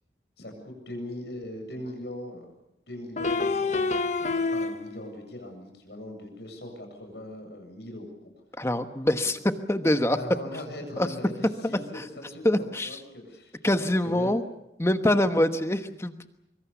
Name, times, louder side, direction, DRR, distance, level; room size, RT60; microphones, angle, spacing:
voice 1, 0.4-2.5 2.9-8.3 9.2-9.3 10.0-14.4, left 1 dB, 70° left, 4 dB, 7.6 m, -40 dB
sound 1, 1.9-2.0 3.2-5.1, left 3 dB, 40° left, 1.0 m, -27 dB
voice 2, 8.6-9.4 9.7-10.2 11.0-11.1 11.9-12.0 12.4-13.0 13.6-14.4 14.8-16.3, left 1 dB, 15° left, 8 dB, 1.2 m, -24 dB
24.5 x 24.0 x 7.1 m, 0.87 s
head